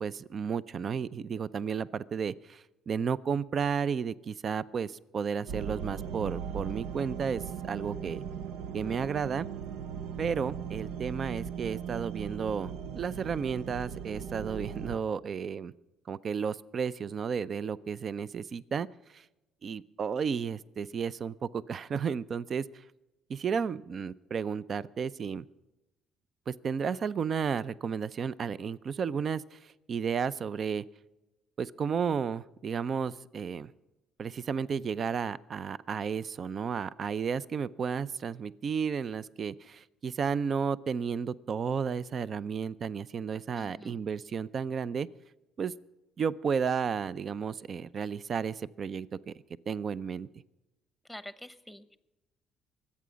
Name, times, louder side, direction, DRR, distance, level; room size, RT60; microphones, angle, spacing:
voice 1, 0.0-8.2 8.7-9.5 10.2-15.7 16.1-18.9 19.1-19.2 19.6-22.7 23.3-25.5 26.5-30.8 31.6-33.7 34.2-45.1 45.6-45.7 46.2-49.3 49.7-50.3, right 6 dB, 50° right, 17 dB, 0.5 m, -33 dB
sound 1, 5.5-15.0, right 7 dB, 90° right, 0.7 m, -38 dB
voice 2, 43.6-44.0 51.1-52.0, left 1 dB, ahead, 13 dB, 1.0 m, -46 dB
24.0 x 8.6 x 5.1 m, 0.99 s
cardioid pair, 90°, 0 cm